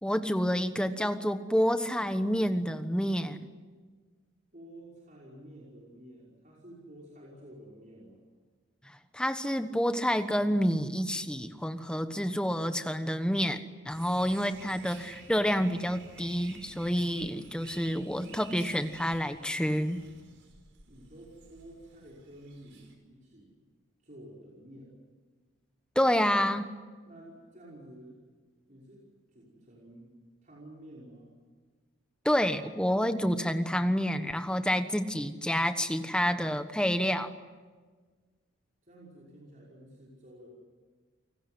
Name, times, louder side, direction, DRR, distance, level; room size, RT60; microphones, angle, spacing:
voice 1, 0.0-3.5 9.1-20.0 25.9-26.7 32.2-37.3, equal, 5° left, 9 dB, 1.2 m, -28 dB
voice 2, 4.5-8.2 20.9-23.5 24.0-25.0 27.1-28.3 28.7-30.1 30.4-31.3 38.8-40.5, right 1 dB, 40° right, -5 dB, 5.6 m, -51 dB
sound 1, 13.9-22.9, right 5 dB, 75° right, 5.2 m, -52 dB
29.5 x 19.0 x 9.6 m, 1.4 s
head